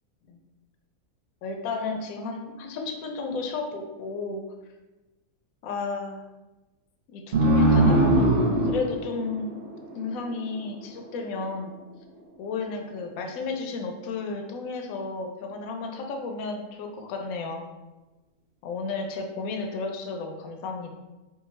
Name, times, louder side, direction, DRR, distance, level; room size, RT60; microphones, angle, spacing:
voice 1, 1.4-4.4 5.6-6.2 7.1-9.5 10.0-11.7 12.4-17.7 18.6-20.9, left 3 dB, 70° left, 4 dB, 0.9 m, -33 dB
sound 1, 7.3-10.5, right 1 dB, 55° right, 0.6 m, -21 dB
4.6 x 2.3 x 3.1 m, 1.1 s
omnidirectional pair, 1.6 m